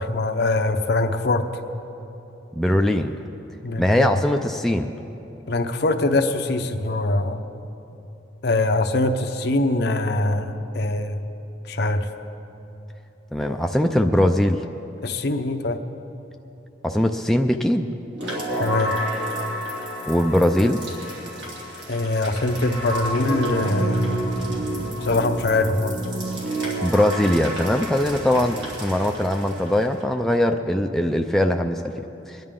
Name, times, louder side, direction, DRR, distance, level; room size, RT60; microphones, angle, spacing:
voice 1, 0.0-1.4 3.6-4.1 5.5-7.4 8.4-11.2 11.7-12.0 15.0-15.8 18.6-18.9 21.9-24.2 25.0-25.9, left 2 dB, 60° left, 5 dB, 0.8 m, -23 dB
voice 2, 2.6-3.1 3.8-4.9 13.3-14.6 16.8-17.9 20.1-20.8 26.8-31.9 32.3-32.4, left 1 dB, ahead, 3 dB, 0.4 m, -21 dB
sound 1, 18.1-30.0, right 1 dB, 70° right, 3.0 m, -30 dB
22.5 x 10.5 x 3.7 m, 3.0 s
head